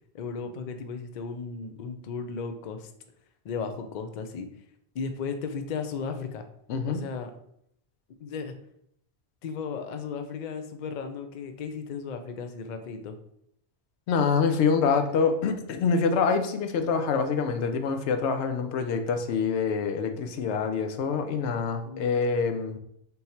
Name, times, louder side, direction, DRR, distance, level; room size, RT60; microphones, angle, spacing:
voice 1, 0.1-2.9 3.4-4.5 4.9-6.4 6.9-7.3 8.2-8.5 9.4-13.2 21.9-22.0, left 5 dB, 55° left, 7 dB, 0.5 m, -35 dB
voice 2, 6.7-7.0 14.1-22.8, left 5 dB, 90° left, 7 dB, 0.9 m, -26 dB
3.8 x 2.7 x 4.2 m, 0.72 s
omnidirectional pair, 1.1 m